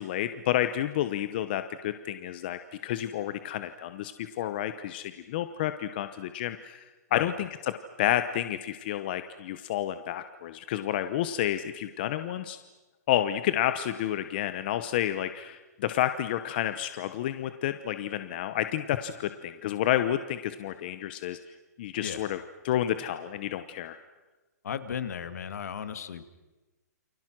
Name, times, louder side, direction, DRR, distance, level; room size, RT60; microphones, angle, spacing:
voice 1, 0.0-7.5 8.0-12.6 13.1-21.4 21.8-22.4 22.6-24.0, left 12 dB, 35° left, 10 dB, 0.9 m, -30 dB
voice 2, 24.6-26.2, left 7 dB, 65° left, 11 dB, 2.1 m, -35 dB
29.5 x 26.0 x 6.2 m, 1.2 s
hypercardioid pair, 170°, 9 cm